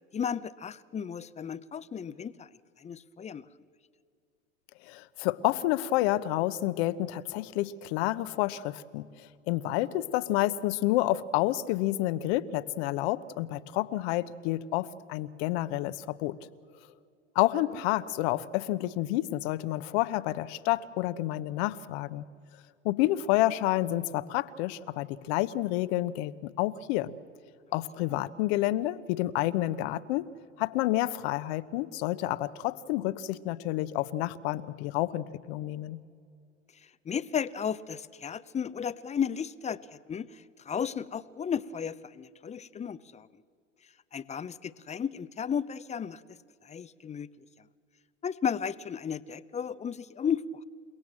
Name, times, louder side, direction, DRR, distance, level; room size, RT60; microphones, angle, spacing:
voice 1, 0.1-2.5 2.8-3.4 37.0-43.3 44.1-46.4 46.6-47.3 48.2-50.6, left 7 dB, 20° left, 15 dB, 0.7 m, -34 dB
voice 2, 4.8-9.1 9.5-16.4 17.3-22.2 22.8-27.1 27.7-30.3 30.6-36.0, left 15 dB, 55° left, 14 dB, 1.0 m, -29 dB
29.0 x 17.5 x 7.6 m, 2.4 s
hypercardioid pair, 90°, 38 cm